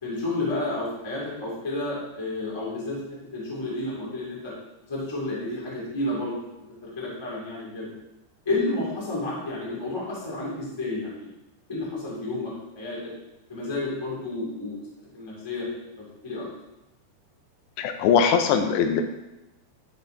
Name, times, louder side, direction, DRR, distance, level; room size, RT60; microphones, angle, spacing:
voice 1, 0.0-3.0 3.3-4.5 4.9-6.4 6.8-7.9 8.4-11.3 11.7-13.1 13.5-14.7 15.1-15.7 16.0-16.4, left 2 dB, 10° left, -6 dB, 1.1 m, -31 dB
voice 2, 17.8-19.0, left 7 dB, 85° left, 6 dB, 2.8 m, -21 dB
12.0 x 4.1 x 3.9 m, 0.92 s
omnidirectional pair, 5.0 m